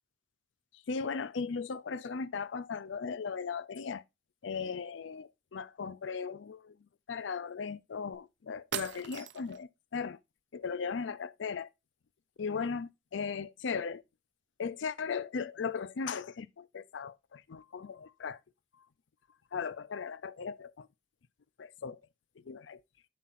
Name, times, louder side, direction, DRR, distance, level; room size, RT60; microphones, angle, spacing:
voice 1, 0.7-4.0 4.4-6.7 7.1-10.2 10.5-11.7 12.4-14.0 14.6-18.4 18.8-18.9 19.5-20.9 21.6-22.0 22.4-22.8, left 5 dB, 80° left, 0.5 m, -37 dB
sound 1, 8.1-8.2 8.7-9.6, right 9 dB, 70° right, 0.5 m, -39 dB
7.4 x 5.8 x 2.5 m
head